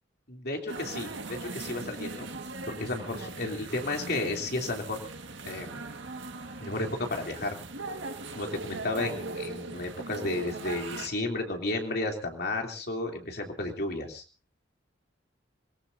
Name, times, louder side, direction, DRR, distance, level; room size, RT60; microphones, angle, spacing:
voice 1, 0.3-2.3 2.7-5.0 5.4-5.8 6.6-7.6 8.4-14.2, left 2 dB, 60° left, 2 dB, 3.0 m, -33 dB
sound 1, 0.7-11.1, right 3 dB, 80° right, 1.7 m, -39 dB
26.0 x 18.5 x 2.7 m, 0.34 s
head